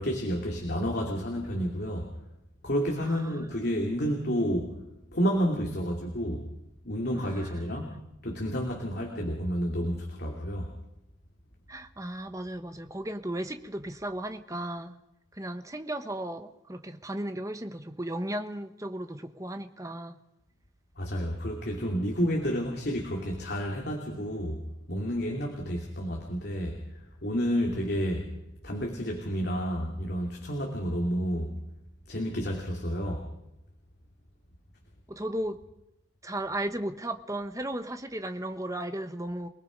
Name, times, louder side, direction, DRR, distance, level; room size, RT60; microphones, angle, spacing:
voice 1, 0.0-2.1 2.6-4.8 5.1-6.5 6.8-7.9 8.2-10.7 21.0-24.6 24.9-26.8 27.2-28.3 28.6-31.5 32.1-33.3, equal, 50° left, 0 dB, 2.9 m, -30 dB
voice 2, 3.0-3.6 7.1-8.0 11.7-15.0 15.3-20.2 35.1-35.6 36.2-39.5, right 1 dB, 15° right, 8 dB, 1.1 m, -35 dB
29.0 x 19.5 x 5.3 m, 0.88 s
head